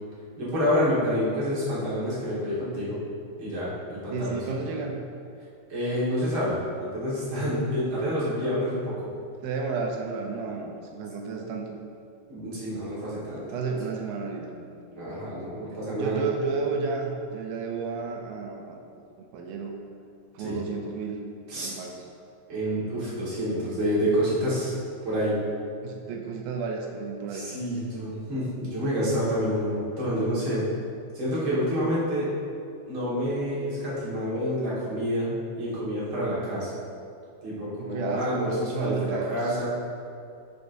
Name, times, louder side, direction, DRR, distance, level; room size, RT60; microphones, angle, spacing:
voice 1, 0.4-3.0 3.4-4.7 5.7-9.1 12.3-13.4 14.9-16.2 20.4-20.6 21.5-21.7 22.5-24.7 25.0-25.4 27.3-30.7 31.1-32.3 32.9-36.7 37.4-39.7, equal, 45° right, -8 dB, 1.8 m, -28 dB
voice 2, 4.1-5.1 9.4-11.7 13.5-14.7 16.0-18.8 19.3-19.8 20.3-21.2 21.5-22.0 25.8-27.5 37.8-39.5, right 4 dB, 80° right, 2 dB, 2.3 m, -32 dB
10.5 x 5.1 x 2.6 m, 2.5 s
omnidirectional pair, 4.3 m